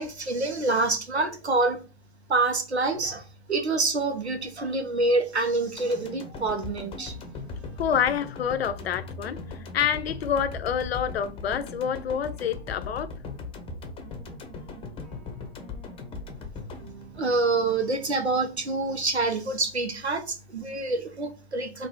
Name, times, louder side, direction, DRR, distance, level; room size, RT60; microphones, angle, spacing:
voice 1, 0.0-1.8 2.3-7.1 17.2-21.9, right 3 dB, 90° right, 1.0 m, -26 dB
sound 1, 5.8-18.0 18.4-18.5, left 4 dB, 15° left, 0.8 m, -39 dB
sound 2, 7.0-19.0, right 1 dB, 30° right, 2.3 m, -49 dB
voice 2, 7.8-13.1, left 8 dB, 70° left, 0.6 m, -27 dB
4.0 x 2.6 x 4.4 m
figure-of-eight pair, 105°, 32 cm